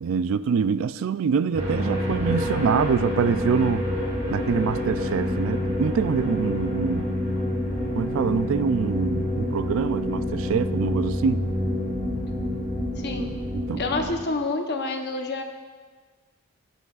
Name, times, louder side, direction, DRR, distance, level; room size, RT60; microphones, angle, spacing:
voice 1, 0.0-3.8 4.3-7.1 7.9-11.4 13.5-13.8, right 6 dB, 60° right, 0.3 m, -25 dB
sound 1, 1.5-14.1, left 1 dB, 40° right, 3.3 m, -27 dB
voice 2, 13.0-13.3 13.8-15.4, left 3 dB, 50° left, 0.8 m, -28 dB
17.0 x 8.0 x 2.4 m
head